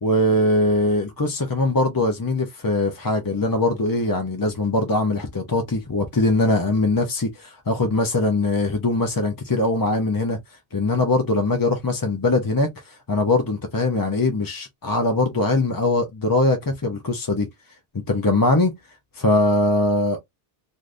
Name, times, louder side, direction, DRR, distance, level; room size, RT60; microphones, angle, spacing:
voice 1, 0.0-10.4 10.7-17.5 18.1-18.7 19.1-20.2, left 2 dB, 30° left, 0.4 m, -21 dB
2.5 x 2.5 x 3.3 m
omnidirectional pair, 1.1 m